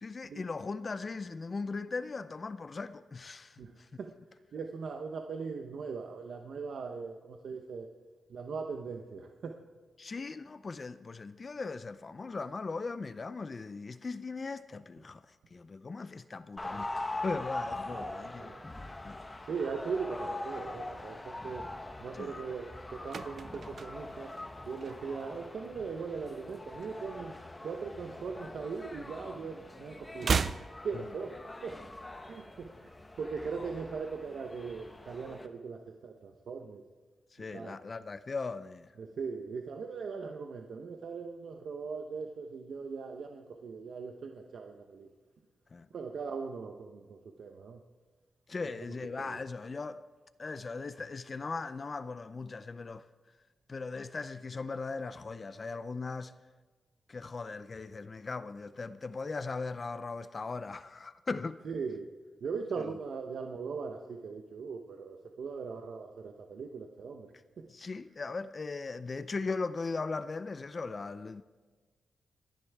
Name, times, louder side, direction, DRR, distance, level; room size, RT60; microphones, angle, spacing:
voice 1, 0.0-3.9 10.0-15.2 15.5-18.5 19.0-19.2 22.1-22.4 30.9-31.1 37.3-38.9 45.7-45.9 48.5-50.0 50.4-53.1 53.7-56.4 57.1-61.6 62.8-62.9 67.7-71.4, left 4 dB, 35° left, 0.5 m, -39 dB
voice 2, 4.5-7.9 8.3-9.6 17.9-18.6 19.4-21.7 22.0-24.3 24.7-27.4 27.6-30.3 30.8-31.8 32.3-32.9 33.2-36.8 37.5-37.8 39.0-45.1 45.9-47.8 49.2-49.4 61.6-62.1 62.4-67.7, right 5 dB, 70° right, 0.9 m, -40 dB
sound 1, 16.6-35.5, left 2 dB, 20° left, 1.0 m, -43 dB
sound 2, 23.0-25.4 25.7-26.0 26.3-27.7 28.0-29.4 29.6-31.7 32.0-32.1, right 5 dB, 55° right, 0.4 m, -36 dB
29.5 x 10.0 x 3.5 m
cardioid pair, 105°, 0 cm